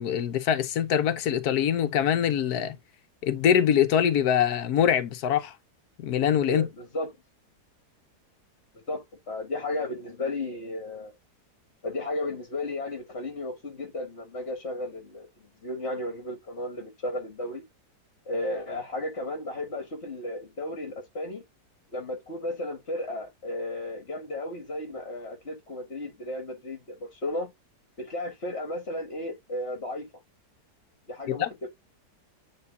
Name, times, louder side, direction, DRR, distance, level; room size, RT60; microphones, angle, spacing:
voice 1, 0.0-2.8 3.2-5.5 6.0-6.7 31.3-31.5, left 9 dB, 70° left, 1.4 m, -24 dB
voice 2, 6.4-7.1 8.9-11.1 11.8-15.3 15.6-17.7 18.3-21.4 21.9-27.5 28.0-30.1 31.1-31.7, left 1 dB, 40° left, 1.7 m, -34 dB
9.5 x 3.8 x 2.7 m
omnidirectional pair, 1.7 m